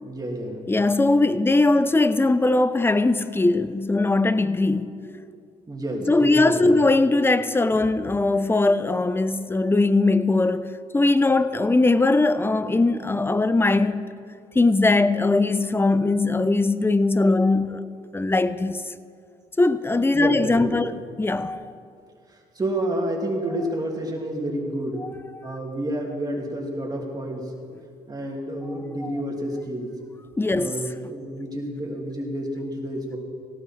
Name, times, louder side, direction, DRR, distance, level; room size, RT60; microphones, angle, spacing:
voice 1, 0.0-0.6 5.0-5.2 5.7-6.8 20.1-20.9 22.3-25.1 25.4-27.5 28.1-29.9 30.5-33.2, right 1 dB, 25° right, 3.1 m, -30 dB
voice 2, 0.7-5.0 6.1-14.1 14.5-17.8 18.1-18.9 19.6-21.7 25.0-25.1 25.3-25.6 29.0-29.1 30.4-30.8, left 2 dB, 15° left, 0.8 m, -20 dB
17.5 x 17.0 x 4.7 m
supercardioid pair, 70°, 16 cm